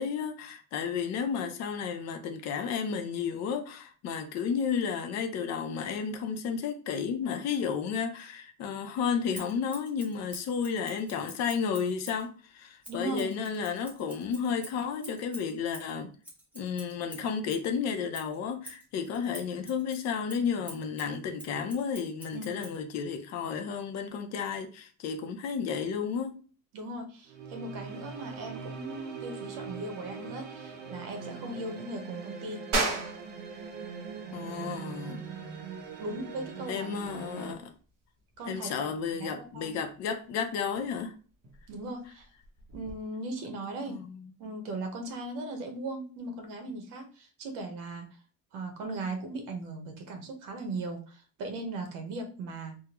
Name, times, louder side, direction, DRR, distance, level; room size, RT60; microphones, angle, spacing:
voice 1, 0.0-16.1 16.5-26.4 34.3-35.3 36.7-37.7 38.5-41.1 43.9-44.3, left 6 dB, 55° left, 0.6 m, -32 dB
Scissors, 9.3-12.3 12.8-17.7 18.1-22.8, right 1 dB, 5° right, 0.8 m, -48 dB
voice 2, 12.9-13.3 22.3-22.6 26.7-32.7 36.0-36.9 38.4-38.9 39.2-39.8 41.7-42.2 42.7-44.0 44.4-48.0 48.5-52.8, right 2 dB, 75° right, 1.0 m, -38 dB
sound 1, 27.3-37.5, right 5 dB, 35° right, 0.4 m, -41 dB
sound 2, 32.7-43.0, right 2 dB, 55° right, 1.0 m, -39 dB
3.5 x 2.1 x 3.0 m
cardioid pair, 170°, 33 cm